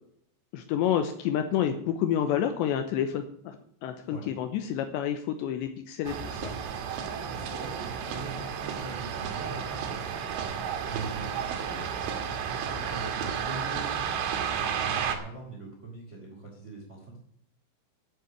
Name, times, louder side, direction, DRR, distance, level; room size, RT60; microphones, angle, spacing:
voice 1, 0.5-3.6 3.8-6.6, left 9 dB, 80° left, 8 dB, 2.9 m, -29 dB
sound 1, 6.1-15.2, right 7 dB, 90° right, 4.1 m, -32 dB
voice 2, 7.2-10.0 10.9-11.3 11.6-11.9 12.7-14.0 14.3-17.2, right 3 dB, 20° right, -1 dB, 2.7 m, -42 dB
9.6 x 8.3 x 9.3 m, 0.67 s
omnidirectional pair, 5.5 m